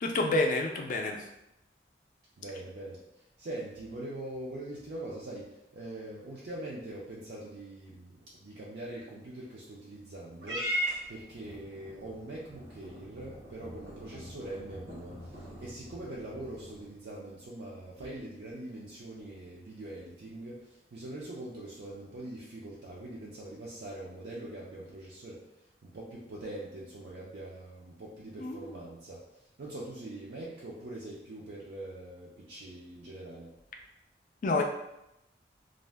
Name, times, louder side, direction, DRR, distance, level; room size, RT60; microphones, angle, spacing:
voice 1, 0.0-1.2 28.4-28.8 34.4-34.6, left 2 dB, 45° left, 3 dB, 0.3 m, -28 dB
voice 2, 2.4-25.4 25.8-29.2 29.6-33.5, right 1 dB, 65° right, -5 dB, 0.4 m, -43 dB
Purr / Meow, 10.4-16.9, equal, 90° right, 0.9 m, -40 dB
2.4 x 2.1 x 3.3 m, 0.87 s
head